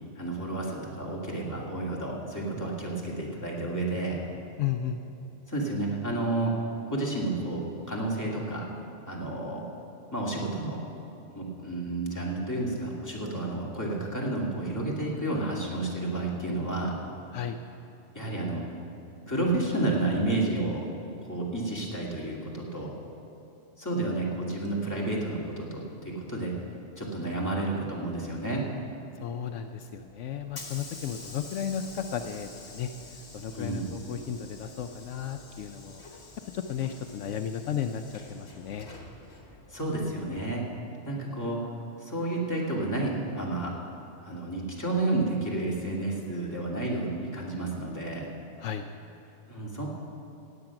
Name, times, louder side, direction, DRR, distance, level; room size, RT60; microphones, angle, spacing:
voice 1, 0.2-4.2 5.5-6.5 6.9-7.6 7.9-8.7 9.1-9.6 10.1-10.8 11.3-17.0 18.1-18.6 19.3-20.8 21.2-22.9 23.8-26.5 27.0-28.7 33.5-33.9 39.7-40.6 41.0-41.7 42.0-43.7 44.2-48.3 49.5-49.9, right 2 dB, 15° left, -4 dB, 2.2 m, -31 dB
voice 2, 4.6-5.0 17.3-17.6 29.2-32.9 33.3-36.0 36.5-38.9 48.6-48.9, left 8 dB, 75° left, 7 dB, 0.9 m, -34 dB
Hiss / Sliding door, 29.8-40.7, left 3 dB, 60° left, 1.6 m, -48 dB
16.5 x 8.9 x 5.9 m, 2.8 s
omnidirectional pair, 1.3 m